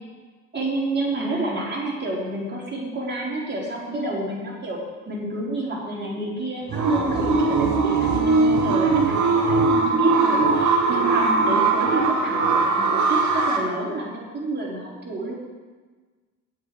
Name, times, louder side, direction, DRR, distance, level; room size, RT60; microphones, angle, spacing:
voice 1, 0.5-15.3, right 2 dB, 25° right, -4 dB, 4.1 m, -29 dB
sound 1, 6.7-13.6, right 3 dB, 40° right, 1.6 m, -20 dB
16.5 x 5.6 x 4.8 m, 1.3 s
figure-of-eight pair, 50°, 45 cm